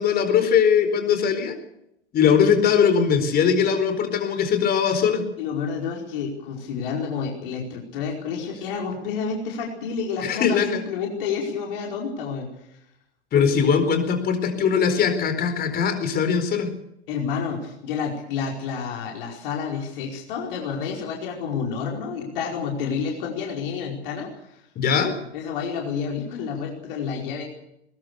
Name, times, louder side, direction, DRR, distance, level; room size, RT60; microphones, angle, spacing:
voice 1, 0.0-1.6 2.1-5.2 10.2-10.8 13.3-16.7 24.8-25.2, left 7 dB, 25° left, 8 dB, 4.4 m, -20 dB
voice 2, 5.4-12.8 13.3-13.7 17.1-24.6 25.3-27.4, left 6 dB, 50° left, -1 dB, 4.9 m, -29 dB
21.0 x 21.0 x 6.9 m, 0.80 s
figure-of-eight pair, 95°, 34 cm